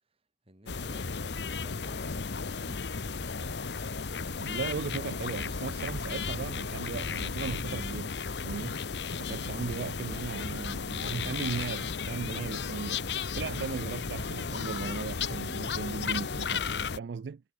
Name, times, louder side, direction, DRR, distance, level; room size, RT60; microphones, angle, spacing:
voice 1, 0.4-3.4, right 1 dB, 35° right, 4.5 m, -55 dB
sound 1, 0.7-17.0, left 5 dB, 75° left, 0.9 m, -34 dB
voice 2, 4.5-8.1 8.4-8.8 9.2-13.0 13.3-17.4, right 5 dB, 70° right, 0.4 m, -37 dB
head